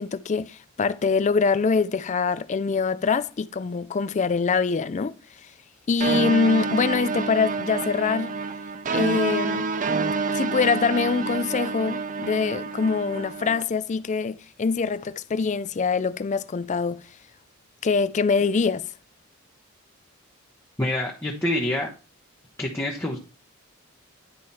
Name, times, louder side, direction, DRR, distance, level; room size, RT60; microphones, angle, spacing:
voice 1, 0.0-5.2 5.9-8.4 8.9-9.7 10.3-17.0 17.8-18.9, left 5 dB, 35° left, 0.4 m, -24 dB
sound 1, 6.0-13.6, right 4 dB, 35° right, 0.5 m, -28 dB
voice 2, 20.8-21.9 22.6-23.2, left 1 dB, 10° left, 1.1 m, -26 dB
10.5 x 4.8 x 4.2 m
head